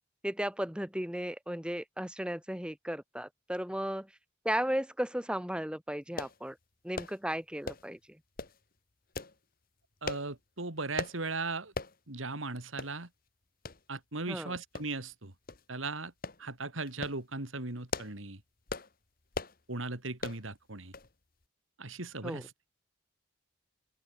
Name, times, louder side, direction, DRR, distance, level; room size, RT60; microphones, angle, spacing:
voice 1, 0.2-4.1 4.4-6.6 6.8-8.0 14.3-14.5 22.2-22.4, equal, 5° right, 2.0 m, -35 dB
sound 1, 6.2-6.4 6.9-7.2 7.6-7.9 8.4-8.6 9.1-9.4 10.0-10.3 11.0-11.2 11.7-12.0 12.3-12.4 12.8-12.9 13.6-13.8 14.7-15.1 15.5-15.6 16.2-16.4 16.9-17.2 17.7-18.2 18.7-18.9 19.3-19.6 20.2-20.4 20.9-21.1 21.4-21.5, left 3 dB, 45° left, 1.8 m, -38 dB
voice 2, 10.0-11.7 12.1-13.1 13.9-15.3 15.7-16.1 16.4-18.4 19.7-20.9 21.8-22.5, right 3 dB, 80° right, 2.8 m, -38 dB
head